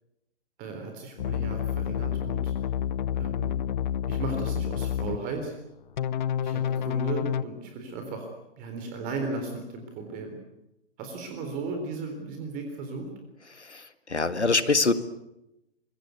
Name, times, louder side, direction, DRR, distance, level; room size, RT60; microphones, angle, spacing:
voice 1, 0.6-2.5 3.2-3.5 4.1-5.5 6.4-8.3 8.6-10.4 11.0-13.1, right 3 dB, 25° right, 4 dB, 3.9 m, -35 dB
sound 1, 1.2-5.2 6.0-7.4, left 9 dB, 45° left, 0.8 m, -29 dB
voice 2, 13.5-14.9, left 3 dB, 85° left, 13 dB, 1.8 m, -25 dB
25.0 x 22.5 x 8.2 m, 0.91 s
figure-of-eight pair, 125°, 33 cm